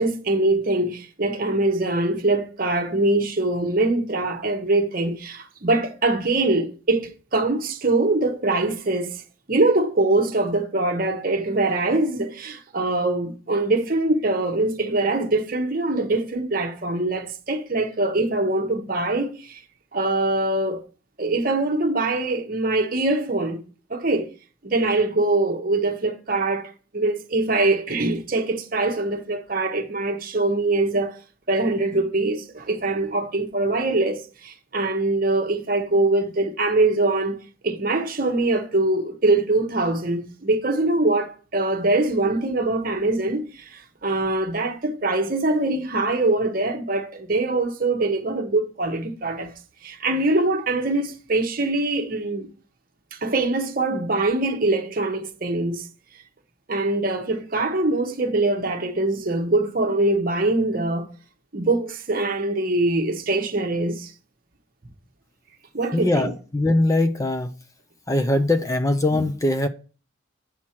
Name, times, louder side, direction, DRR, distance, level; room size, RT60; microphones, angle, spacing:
voice 1, 0.0-9.2 9.5-19.6 19.9-20.8 21.2-23.6 23.9-24.3 24.6-31.2 31.5-37.4 37.6-49.5 49.8-52.5 53.1-55.9 56.7-61.1 61.5-64.1 65.7-66.3, right 2 dB, 45° right, 0.9 m, -23 dB
voice 2, 65.9-67.5 68.1-69.7, left 1 dB, 15° left, 0.4 m, -21 dB
8.5 x 6.1 x 4.3 m
head